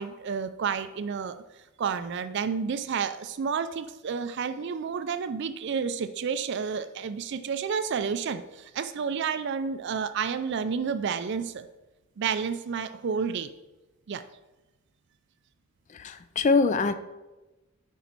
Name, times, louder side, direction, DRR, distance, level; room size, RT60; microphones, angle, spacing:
voice 1, 0.0-1.3 1.8-11.7 12.2-13.5 14.1-14.2, right 6 dB, 55° right, 11 dB, 0.4 m, -30 dB
voice 2, 15.9-16.9, left 4 dB, 35° left, 11 dB, 0.4 m, -24 dB
8.2 x 5.1 x 4.5 m, 1.1 s
head